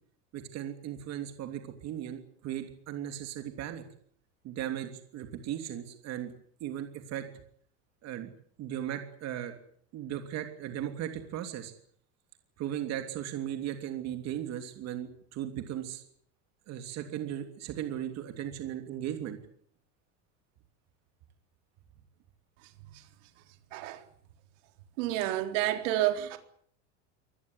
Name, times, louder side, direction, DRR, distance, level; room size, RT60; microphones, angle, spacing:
voice 1, 0.3-3.8 4.4-6.3 6.6-7.2 8.0-8.3 8.6-9.6 9.9-11.7 12.6-16.1 16.7-19.4, right 11 dB, 45° right, 3.2 m, -37 dB
voice 2, 25.0-26.4, right 14 dB, 75° right, 4.0 m, -29 dB
24.5 x 20.0 x 8.3 m
cardioid pair, 155°, 37 cm